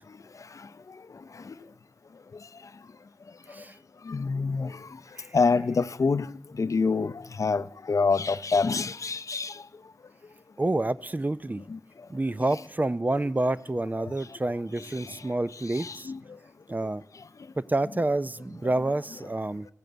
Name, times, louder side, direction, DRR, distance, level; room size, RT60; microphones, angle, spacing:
voice 1, 4.1-4.7 5.3-6.3 6.6-7.1 7.4-9.5 11.7-11.8 15.8-16.2, left 4 dB, 65° left, 0.5 m, -26 dB
voice 2, 10.6-11.6 12.1-16.1 16.7-17.0 17.6-19.7, right 2 dB, 30° right, 0.5 m, -28 dB
14.0 x 12.0 x 7.9 m
cardioid pair, 40°, 6 cm